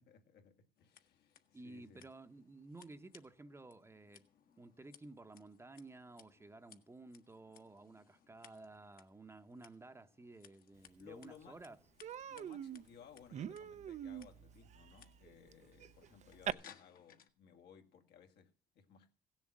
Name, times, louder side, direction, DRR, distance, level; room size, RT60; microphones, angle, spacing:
voice 1, 0.0-2.1 10.7-11.6 12.3-19.2, left 8 dB, 75° left, 2.0 m, -60 dB
Scissors, 0.8-17.3, left 8 dB, 60° left, 1.4 m, -65 dB
voice 2, 1.5-4.3 4.6-11.8, right 2 dB, 15° right, 0.8 m, -54 dB
Human voice, 11.0-11.1 11.4-11.6 12.0-16.5, right 9 dB, 45° right, 0.6 m, -45 dB
16.5 x 7.3 x 7.6 m
cardioid pair, 110°, 17 cm